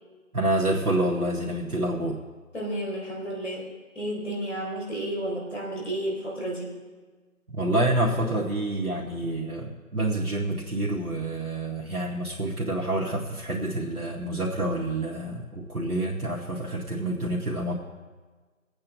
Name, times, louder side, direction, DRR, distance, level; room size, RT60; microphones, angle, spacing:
voice 1, 0.3-2.2 7.5-17.7, right 1 dB, 85° right, -3 dB, 2.0 m, -28 dB
voice 2, 2.5-6.8, right 1 dB, 55° left, -2 dB, 3.9 m, -32 dB
22.0 x 8.7 x 3.6 m, 1.4 s
figure-of-eight pair, 165°, 43 cm